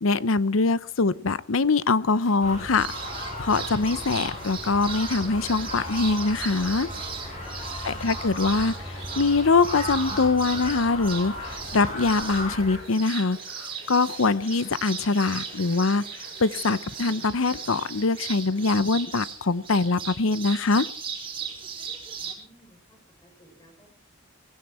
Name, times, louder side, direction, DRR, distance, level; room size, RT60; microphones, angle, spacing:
voice 1, 0.0-2.9 3.4-6.9 7.8-16.0 16.4-20.9, left 3 dB, 85° left, 0.8 m, -23 dB
Cheering / Applause, 1.4-20.0, left 2 dB, 70° left, 7.4 m, -52 dB
sound 1, 2.4-12.8, left 1 dB, 35° left, 7.7 m, -35 dB
sound 2, 2.8-22.3, right 6 dB, 25° right, 3.9 m, -38 dB
voice 2, 22.2-24.0, right 1 dB, 15° left, 7.4 m, -58 dB
17.5 x 16.0 x 4.4 m
head